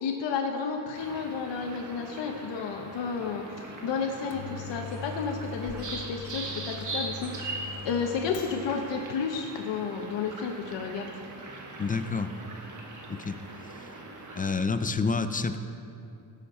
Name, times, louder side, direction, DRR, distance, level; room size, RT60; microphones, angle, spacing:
voice 1, 0.0-7.6 7.8-11.1, left 5 dB, 80° left, 3 dB, 0.9 m, -32 dB
sound 1, 0.9-14.5, right 2 dB, 45° right, 1.4 m, -41 dB
Microwave oven, 4.1-8.9, left 5 dB, 55° left, 0.9 m, -41 dB
voice 2, 11.8-12.3 13.1-13.4 14.4-15.6, left 4 dB, 20° left, 10 dB, 0.4 m, -28 dB
16.5 x 6.6 x 4.3 m, 2.6 s
cardioid pair, 115°, 43 cm